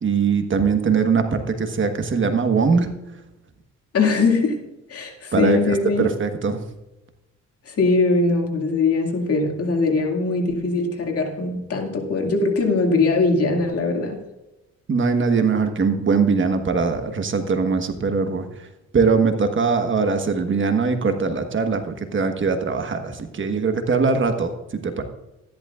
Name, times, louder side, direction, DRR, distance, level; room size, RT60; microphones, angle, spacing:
voice 1, 0.0-2.9 5.3-6.6 14.9-18.7 18.9-25.0, right 5 dB, 40° right, 1.3 m, -21 dB
voice 2, 3.9-6.1 7.7-14.2, left 3 dB, 50° left, 2.3 m, -21 dB
13.5 x 11.5 x 2.5 m
cardioid pair, 90°, 30 cm